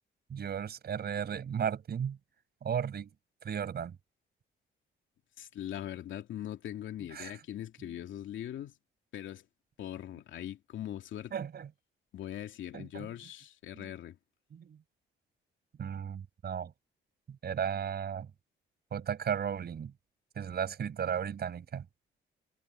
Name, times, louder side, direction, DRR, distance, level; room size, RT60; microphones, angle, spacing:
voice 1, 0.3-2.2 2.6-3.1 3.4-4.0 7.1-7.3 7.8-7.9 11.3-11.7 12.7-13.1 13.7-13.9 14.5-14.8 15.8-16.7 17.3-18.3 18.9-19.9 20.4-21.9, right 8 dB, 55° right, 5.4 m, -35 dB
voice 2, 5.4-8.7 9.1-9.4 9.8-11.3 12.1-14.2, left 11 dB, 75° left, 2.8 m, -41 dB
cardioid pair, 90°, 20 cm